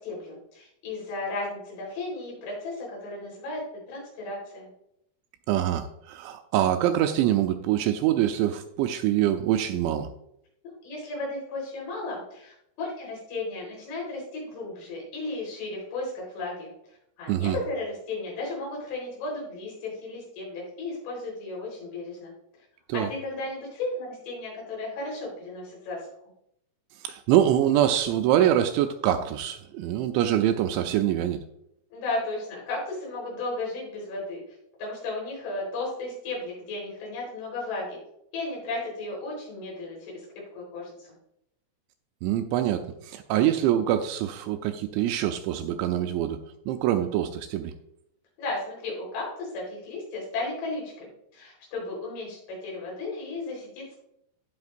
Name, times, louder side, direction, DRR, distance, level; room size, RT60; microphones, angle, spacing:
voice 1, 0.0-3.6 3.9-4.7 10.6-16.7 17.2-22.3 22.9-26.1 31.9-34.4 34.8-38.0 38.3-41.1 48.4-54.0, left 2 dB, 75° left, -3 dB, 6.6 m, -34 dB
voice 2, 5.5-10.1 17.3-17.6 22.9-23.1 27.0-31.4 42.2-47.7, right 11 dB, 85° right, 7 dB, 2.7 m, -24 dB
16.5 x 5.9 x 2.6 m, 0.76 s
omnidirectional pair, 5.5 m